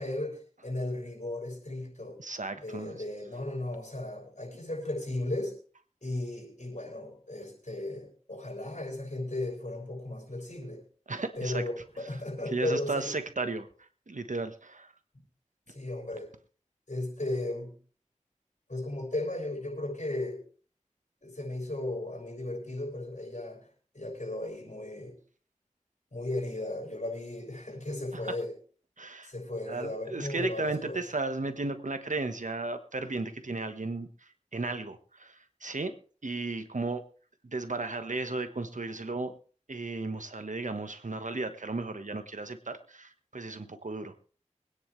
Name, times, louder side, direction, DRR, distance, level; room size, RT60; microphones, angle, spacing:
voice 1, 0.0-2.2 2.6-5.6 6.0-10.8 11.3-13.1 15.7-16.3 16.9-17.7 18.7-20.4 21.2-23.7 23.9-25.2 26.1-28.5 29.2-31.0, left 1 dB, 70° left, 0 dB, 6.6 m, -35 dB
voice 2, 2.2-3.0 11.1-11.6 12.5-13.7 14.1-14.9 29.0-29.3 29.7-34.1 34.5-35.3 35.6-35.9 36.2-37.0 37.4-39.3 39.7-44.1, right 3 dB, 90° right, 9 dB, 1.3 m, -34 dB
24.0 x 9.7 x 3.3 m, 0.40 s
wide cardioid pair, 40°, 13 cm